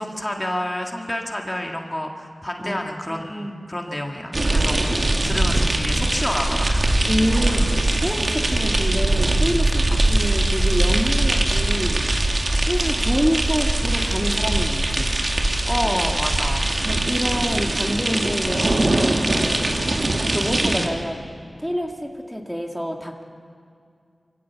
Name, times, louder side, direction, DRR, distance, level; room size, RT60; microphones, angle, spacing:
voice 1, 0.0-7.0 7.4-7.6 9.9-10.0 15.7-16.7 20.1-20.6, left 1 dB, 20° left, 2 dB, 1.9 m, -29 dB
voice 2, 3.1-3.5 7.1-7.6 8.0-12.0 12.7-15.1 16.8-19.5 20.3-21.2 21.6-23.2, equal, ahead, 1 dB, 2.0 m, -27 dB
sound 1, 4.3-20.9, right 2 dB, 50° right, 2.1 m, -21 dB
24.0 x 16.5 x 7.1 m, 2.3 s
wide cardioid pair, 50°, 0 cm